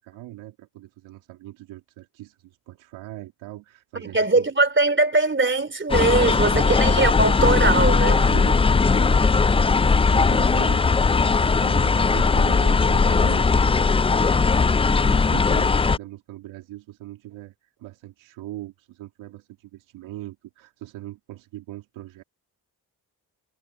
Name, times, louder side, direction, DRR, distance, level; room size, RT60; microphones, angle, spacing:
voice 1, 0.0-4.4 6.5-6.7 8.1-22.2, right 16 dB, 85° right, 2.4 m, -40 dB
voice 2, 3.9-8.2, right 3 dB, 25° right, 3.0 m, -21 dB
sound 1, 5.9-16.0, left 4 dB, 15° left, 0.4 m, -19 dB
supercardioid pair, 45°, 45 cm